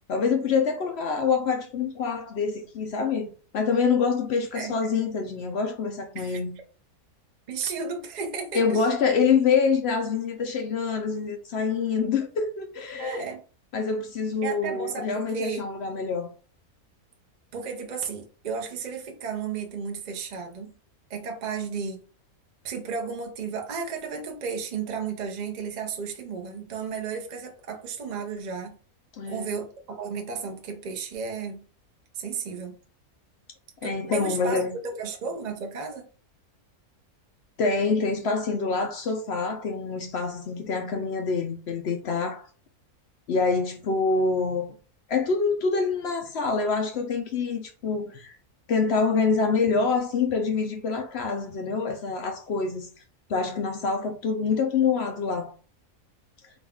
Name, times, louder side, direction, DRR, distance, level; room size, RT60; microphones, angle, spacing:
voice 1, 0.1-3.3 3.5-6.5 8.5-13.2 13.7-16.3 29.2-29.5 33.8-34.7 37.6-42.5 43.3-44.7 45.1-48.4 48.7-52.9 53.3-55.5, left 5 dB, 65° left, 0.6 m, -26 dB
voice 2, 7.5-8.9 13.0-13.4 14.4-15.7 17.5-20.7 21.1-22.0 22.6-28.8 29.3-31.6 32.1-32.8 33.8-36.1, right 5 dB, 50° right, 0.5 m, -33 dB
3.8 x 2.3 x 3.5 m
omnidirectional pair, 1.5 m